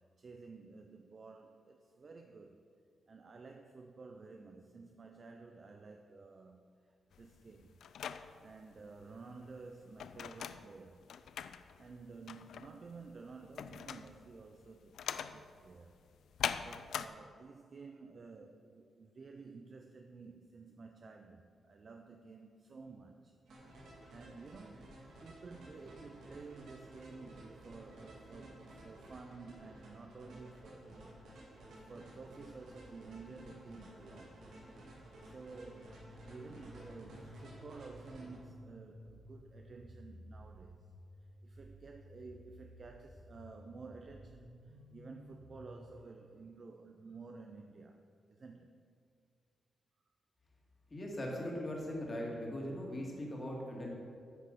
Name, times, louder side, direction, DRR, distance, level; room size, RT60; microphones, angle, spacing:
voice 1, 0.0-2.6 3.1-7.8 8.4-11.0 11.8-16.0 16.6-23.3 23.8-34.4 35.2-40.9 41.4-48.0 48.3-48.7, right 4 dB, 35° right, 4 dB, 0.4 m, -52 dB
sound 1, 7.1-17.1, left 8 dB, 75° left, 0.3 m, -43 dB
sound 2, 23.5-38.4, right 1 dB, 90° right, 2.2 m, -54 dB
sound 3, 35.9-45.9, equal, 65° right, 2.5 m, -55 dB
voice 2, 50.9-53.9, left 1 dB, 25° left, -2 dB, 1.8 m, -40 dB
9.2 x 6.4 x 5.1 m, 2.2 s
wide cardioid pair, 150°, 0 cm